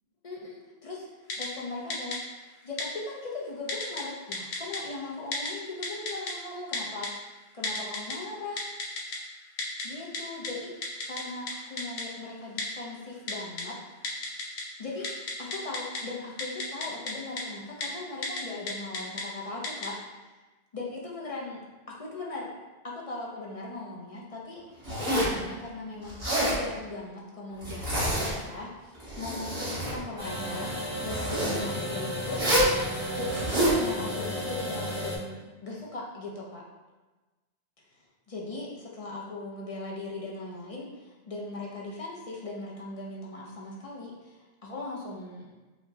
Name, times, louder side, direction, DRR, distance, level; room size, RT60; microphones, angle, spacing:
voice 1, 0.2-1.1 1.4-7.1 7.5-8.6 9.8-13.8 14.8-20.0 20.7-22.5 22.8-32.7 33.1-36.6 37.9-45.5, left 2 dB, 45° left, -3 dB, 0.5 m, -39 dB
Typing, 1.3-1.5 1.9-2.2 2.8-2.9 3.7-4.0 4.3-4.8 5.3-5.5 5.8-6.3 6.7-7.1 7.6-8.1 8.6-9.2 9.6-9.8 10.1-10.2 10.4-10.5 10.8-11.2 11.5-11.6 11.8-12.0 12.6-12.7 13.3-13.6 14.0-14.6 14.9-16.0 16.4-17.1 17.4-17.5 17.8-17.9 18.2-18.4 18.7-19.2 19.6-19.9, left 3 dB, 75° left, 0.9 m, -32 dB
Zipper (clothing), 24.8-25.4 26.1-26.6 27.6-28.5 28.9-30.0 31.0-31.6 32.3-32.7 33.3-33.8, equal, 80° right, 2.0 m, -27 dB
sound 1, 30.2-35.2, equal, 60° right, 1.8 m, -33 dB
4.9 x 2.1 x 2.7 m, 1.2 s
omnidirectional pair, 1.1 m